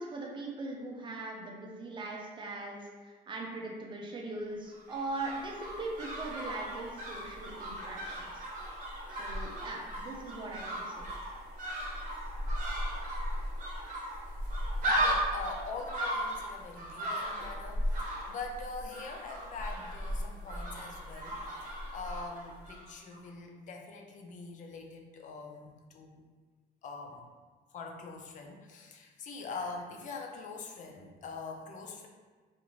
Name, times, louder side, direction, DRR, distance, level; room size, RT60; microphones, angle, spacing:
voice 1, 0.0-8.5 9.1-11.1, right 2 dB, 30° right, -1 dB, 0.6 m, -40 dB
sound 1, 4.7-22.9 23.1-23.2, equal, 50° right, 0.9 m, -36 dB
voice 2, 14.8-26.2 26.8-27.3 27.7-32.1, left 4 dB, 50° left, 2 dB, 0.4 m, -43 dB
2.5 x 2.4 x 3.0 m, 1.4 s
cardioid pair, 110°, 17 cm